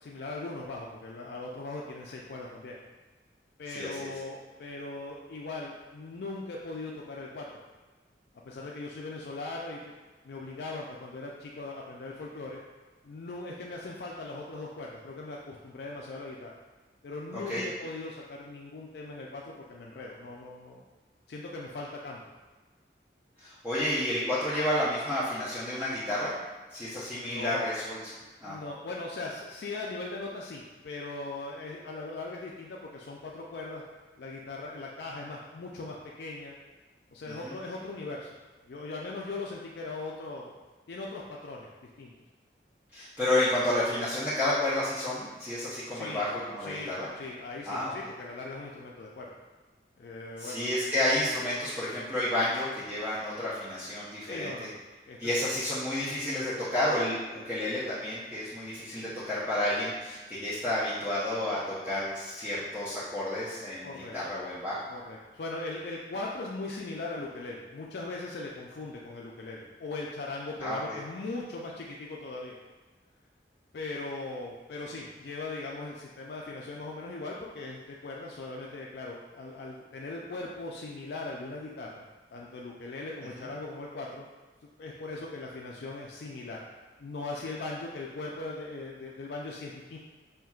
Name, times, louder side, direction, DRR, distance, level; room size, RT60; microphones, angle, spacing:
voice 1, 0.0-2.8 3.6-7.6 8.5-9.9 10.2-12.6 13.0-16.5 17.0-20.8 21.3-22.2 27.3-27.7 28.4-33.8 34.2-36.6 37.1-38.3 38.7-40.5 40.9-41.7 42.0-42.1 45.9-46.2 46.6-49.4 50.0-50.8 54.2-54.8 55.1-55.6 63.8-64.2 64.9-72.6 73.7-82.0 82.3-84.3 84.8-86.6 87.0-90.0, left 2 dB, 70° left, -3 dB, 0.4 m, -39 dB
voice 2, 3.7-4.0 17.3-17.7 23.4-26.3 26.7-28.0 28.4-28.6 37.3-37.5 42.9-47.1 47.6-47.9 50.4-54.7 55.2-64.8 70.6-71.0 83.4-83.5, left 1 dB, 10° right, -12 dB, 0.7 m, -30 dB
5.7 x 2.8 x 2.3 m, 1.3 s
head